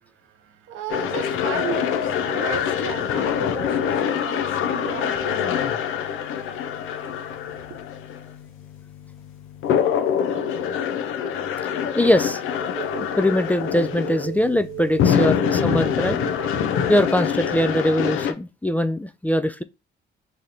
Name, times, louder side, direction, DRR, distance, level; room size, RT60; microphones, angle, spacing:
voice 1, 0.0-5.7 6.5-7.8, right 8 dB, 85° right, 0.7 m, -36 dB
sound 1, 0.9-18.3, left 8 dB, 85° left, 0.6 m, -25 dB
voice 2, 11.9-12.4 13.2-16.2 16.9-19.6, left 1 dB, 10° left, 0.3 m, -21 dB
Telephone, 12.6-17.8, right 14 dB, 50° right, 0.5 m, -36 dB
3.2 x 2.8 x 3.8 m
cardioid pair, 90°, 20 cm